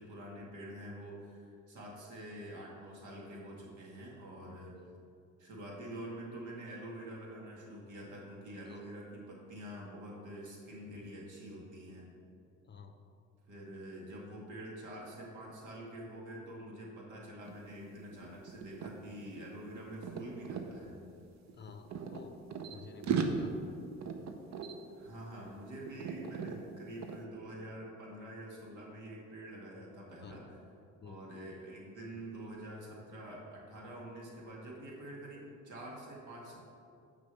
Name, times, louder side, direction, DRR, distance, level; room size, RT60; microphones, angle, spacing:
voice 1, 0.0-4.7 5.4-12.1 13.5-21.0 25.0-30.6 31.0-36.6, right 1 dB, 80° right, -3 dB, 2.0 m, -46 dB
sound 1, 17.4-17.6 17.9-20.7 21.5-22.7 23.0-25.6 25.9-26.6 27.0-27.2, right 5 dB, 65° right, 0.8 m, -38 dB
voice 2, 21.5-22.3 22.7-23.5 30.2-30.3 31.0-31.2, left 6 dB, 35° left, 7 dB, 0.6 m, -50 dB
6.4 x 5.3 x 6.9 m, 2.6 s
cardioid pair, 90°, 30 cm